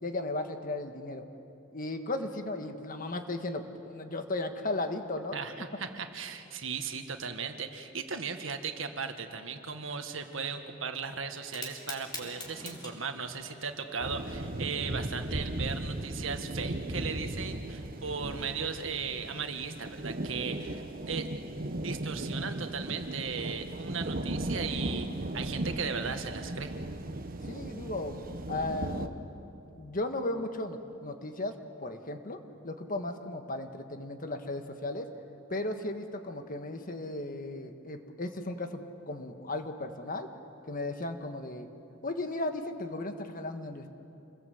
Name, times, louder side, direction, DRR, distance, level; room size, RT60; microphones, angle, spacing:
voice 1, 0.0-1.2 1.7-5.4 27.4-28.2 28.5-29.3 29.6-32.4 32.6-35.1 35.5-40.3 40.7-41.7 42.0-43.9, left 2 dB, 45° left, 6 dB, 1.5 m, -36 dB
voice 2, 5.3-21.3 21.8-25.1 25.3-26.7, right 5 dB, 85° right, 6 dB, 1.7 m, -37 dB
Fire, 11.4-20.2, left 2 dB, 20° left, 3.7 m, -49 dB
sound 1, 14.0-29.1, right 1 dB, 45° right, 1.1 m, -36 dB
28.0 x 21.5 x 7.9 m, 2.8 s
head